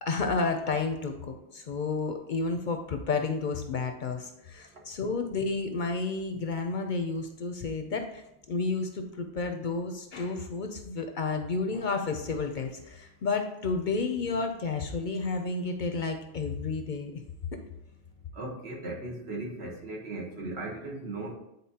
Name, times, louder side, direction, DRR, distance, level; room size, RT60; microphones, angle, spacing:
voice 1, 0.0-17.2, left 4 dB, 55° left, 5 dB, 0.6 m, -31 dB
voice 2, 18.3-21.3, right 2 dB, 75° right, -1 dB, 1.4 m, -37 dB
9.2 x 3.9 x 2.8 m, 0.87 s
omnidirectional pair, 1.1 m